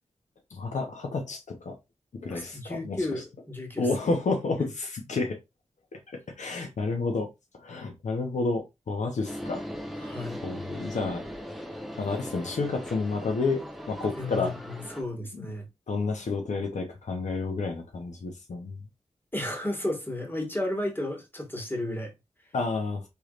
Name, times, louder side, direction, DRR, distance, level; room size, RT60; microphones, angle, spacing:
voice 1, 0.5-1.8 2.2-3.0 3.8-5.4 5.9-6.0 6.4-7.3 7.5-9.6 10.4-11.2 12.0-14.5 15.3-15.5 15.9-18.8 22.5-23.0, left 3 dB, 80° left, 0.9 m, -30 dB
voice 2, 2.3-3.9 4.6-4.7 10.0-10.4 14.2-15.7 19.3-22.1, left 1 dB, 15° left, 1.6 m, -33 dB
sound 1, 9.3-15.0, equal, ahead, 0.8 m, -39 dB
4.6 x 3.3 x 2.5 m
wide cardioid pair, 60°, 12 cm